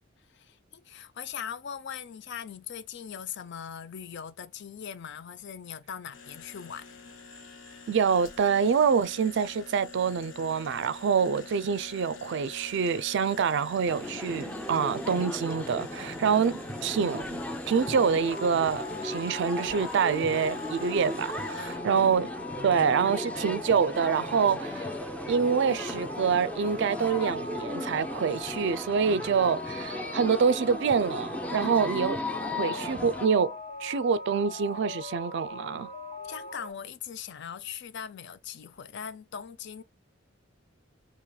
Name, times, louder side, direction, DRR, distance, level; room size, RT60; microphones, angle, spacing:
voice 1, 0.3-7.1 21.5-21.9 31.6-31.9 36.2-39.8, left 8 dB, 60° left, 0.5 m, -40 dB
sound 1, 6.1-21.8, left 4 dB, 85° left, 1.0 m, -47 dB
voice 2, 7.9-17.4 17.7-22.3 22.6-24.9 25.3-32.2 32.6-35.9, right 6 dB, 65° right, 0.4 m, -26 dB
sound 2, 13.8-33.3, left 1 dB, 5° left, 0.5 m, -36 dB
sound 3, 17.8-36.7, left 2 dB, 35° left, 0.9 m, -41 dB
4.7 x 2.9 x 2.3 m
head